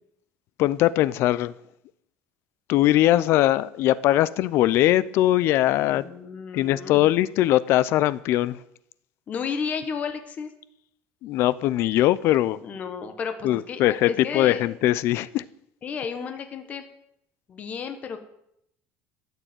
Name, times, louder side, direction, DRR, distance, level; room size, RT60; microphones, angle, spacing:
voice 1, 0.6-1.5 2.7-6.1 6.5-8.6 11.2-12.6 13.4-15.5, left 14 dB, 50° left, 0.6 m, -21 dB
voice 2, 5.8-7.0 9.3-10.5 12.6-14.7 15.8-16.8 17.5-18.2, left 6 dB, 30° left, 1.4 m, -33 dB
13.5 x 6.8 x 9.0 m
cardioid pair, 170°, 5 cm